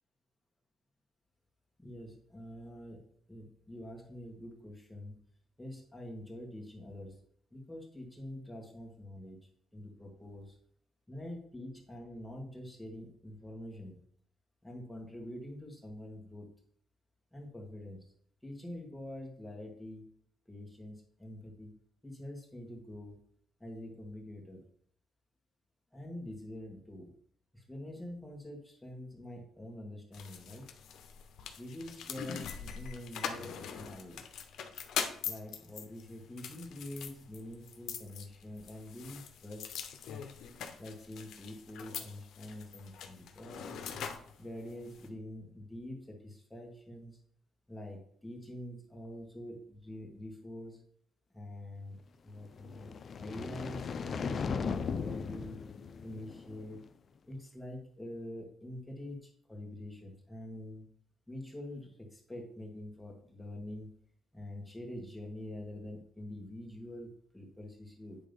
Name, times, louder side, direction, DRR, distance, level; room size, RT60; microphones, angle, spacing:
voice 1, 1.8-5.2 5.6-7.2 7.5-10.6 11.1-14.0 14.6-16.5 17.3-18.0 18.4-20.0 20.5-21.7 22.0-23.2 23.6-24.6 25.9-27.1 27.5-30.6 31.6-34.2 35.2-39.7 40.8-43.9 44.4-47.2 47.7-50.8 51.3-52.0 52.2-52.9 53.2-55.6 56.0-56.8 57.3-60.9 61.3-63.9 64.3-68.2, left 1 dB, 5° left, -1 dB, 2.3 m, -45 dB
sound 1, 30.1-45.1, left 7 dB, 75° left, 0.9 m, -43 dB
sound 2, 52.5-56.8, left 5 dB, 50° left, 0.6 m, -37 dB
8.9 x 3.7 x 5.3 m, 0.64 s
cardioid pair, 90°, 0 cm